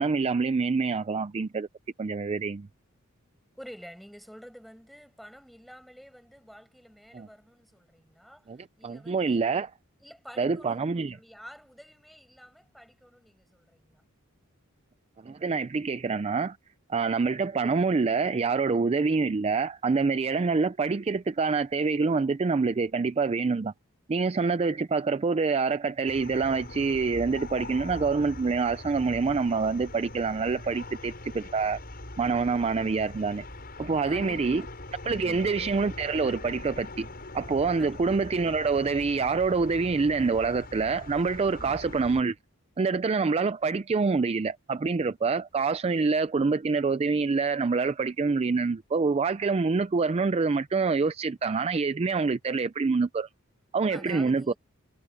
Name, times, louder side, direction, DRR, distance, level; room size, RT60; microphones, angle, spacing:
voice 1, 0.0-1.7 2.0-2.7 7.1-7.3 8.5-8.6 8.8-9.7 10.4-11.2 15.2-16.6 16.9-23.7 24.1-31.8 32.2-33.4 33.8-34.6 35.0-37.1 37.3-42.4 42.8-53.3 53.7-54.5, right 4 dB, 25° right, 0.4 m, -26 dB
voice 2, 3.5-9.4 10.0-10.8 11.1-14.0 34.0-34.7 35.2-35.6 37.8-38.2 41.6-41.8 53.9-54.6, equal, ahead, 6.9 m, -49 dB
sound 1, 26.1-42.2, left 2 dB, 45° left, 7.2 m, -42 dB
head